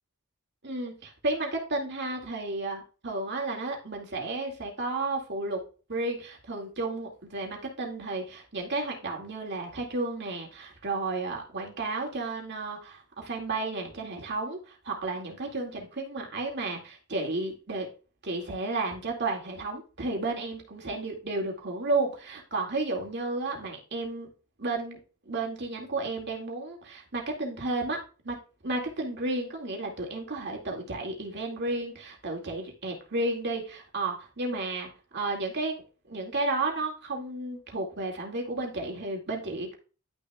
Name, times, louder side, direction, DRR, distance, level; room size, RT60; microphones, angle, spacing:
voice 1, 0.6-5.6 5.9-17.9 18.2-24.3 24.6-25.0 25.3-28.0 28.2-28.4 28.6-39.7, right 2 dB, 50° right, 1 dB, 2.3 m, -32 dB
11.5 x 6.4 x 2.4 m, 0.35 s
head